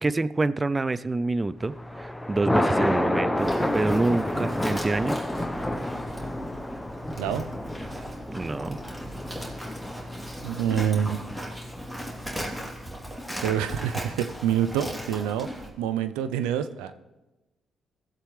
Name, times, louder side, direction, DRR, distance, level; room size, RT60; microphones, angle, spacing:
voice 1, 0.0-5.2 8.3-8.8, right 2 dB, 30° right, 16 dB, 0.4 m, -27 dB
Thunder, 1.6-13.0, left 1 dB, 10° left, 0.9 m, -30 dB
Livestock farm animals working animals, 3.4-15.7, equal, 10° right, 3.1 m, -38 dB
voice 2, 10.4-11.2 13.4-15.5 15.8-16.9, right 9 dB, 90° right, 11 dB, 0.5 m, -26 dB
16.5 x 7.8 x 3.2 m, 1.0 s
supercardioid pair, 50°, 0 cm